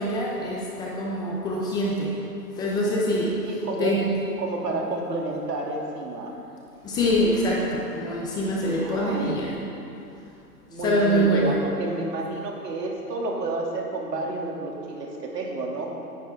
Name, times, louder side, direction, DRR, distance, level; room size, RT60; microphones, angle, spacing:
voice 1, 0.0-2.2 2.6-4.1 6.8-9.5 10.8-11.6, equal, 10° left, -3 dB, 0.7 m, -24 dB
voice 2, 3.4-4.1 4.4-6.4 8.8-9.5 10.7-16.0, right 2 dB, 80° right, -1 dB, 2.8 m, -30 dB
17.5 x 10.5 x 3.7 m, 2.7 s
hypercardioid pair, 150°, 48 cm